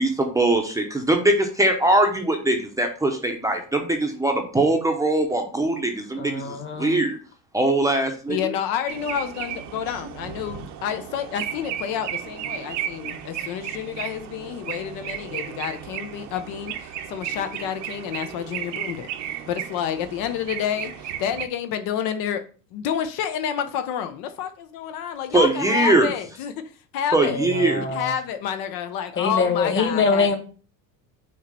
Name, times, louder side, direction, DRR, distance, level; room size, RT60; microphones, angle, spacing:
voice 1, 0.4-7.2 7.5-8.4 25.3-26.1 27.1-27.9, right 2 dB, 10° right, 0.7 m, -21 dB
voice 2, 6.2-7.0 27.3-28.1 29.2-30.4, left 4 dB, 30° left, 1.4 m, -24 dB
voice 3, 8.3-19.1 19.5-22.4 22.7-26.5 26.9-27.4 27.9-30.4, left 9 dB, 65° left, 0.8 m, -29 dB
sound 1, 8.9-21.4, right 10 dB, 45° right, 0.8 m, -34 dB
6.3 x 2.9 x 5.2 m
cardioid pair, 130°, 38 cm